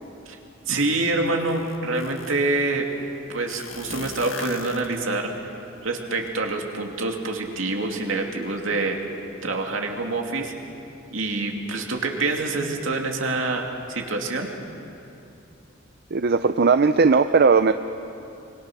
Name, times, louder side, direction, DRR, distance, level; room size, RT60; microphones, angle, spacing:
voice 1, 0.7-2.9 3.3-5.5 5.8-9.0 9.4-10.5 11.1-14.5, right 2 dB, 75° right, 2 dB, 2.6 m, -26 dB
sound 1, 1.0-1.1 1.5-2.6 3.5-5.3, left 5 dB, 75° left, 1.7 m, -38 dB
voice 2, 16.1-17.7, right 4 dB, 50° right, 10 dB, 0.5 m, -17 dB
25.0 x 25.0 x 6.1 m, 2.8 s
head